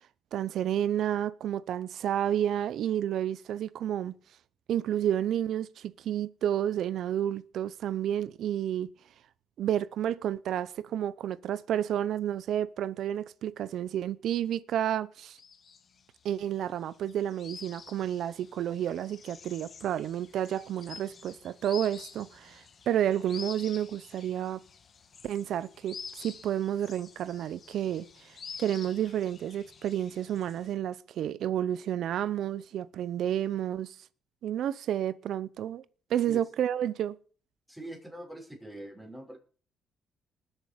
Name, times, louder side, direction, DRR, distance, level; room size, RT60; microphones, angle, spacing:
voice 1, 0.3-4.1 4.7-8.9 9.6-15.4 16.2-24.6 25.2-28.1 28.6-33.9 34.4-35.8 36.1-37.2, right 10 dB, 75° right, 0.7 m, -30 dB
sound 1, 15.3-30.7, left 6 dB, 50° left, 1.5 m, -48 dB
voice 2, 37.7-39.4, right 1 dB, 5° right, 5.5 m, -43 dB
20.5 x 7.4 x 5.3 m
cardioid pair, 90°, 0 cm